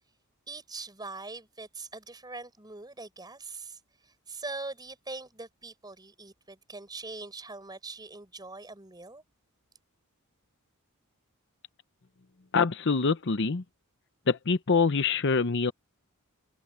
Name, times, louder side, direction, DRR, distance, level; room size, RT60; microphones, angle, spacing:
voice 1, 0.5-9.2, right 3 dB, 20° right, 5.1 m, -42 dB
voice 2, 12.5-13.6 14.3-15.7, left 4 dB, 55° left, 0.8 m, -25 dB
head